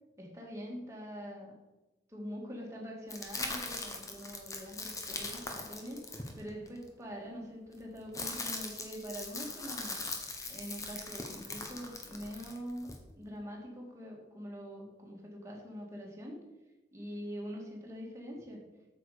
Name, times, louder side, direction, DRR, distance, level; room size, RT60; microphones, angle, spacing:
voice 1, 0.2-1.5 2.1-6.0 6.3-10.0 10.4-16.4 16.9-18.6, equal, 15° right, -2 dB, 2.1 m, -44 dB
sound 1, 3.1-6.8 7.7-13.0, left 3 dB, 15° left, 1.1 m, -40 dB
8.6 x 7.0 x 5.0 m, 1.1 s
head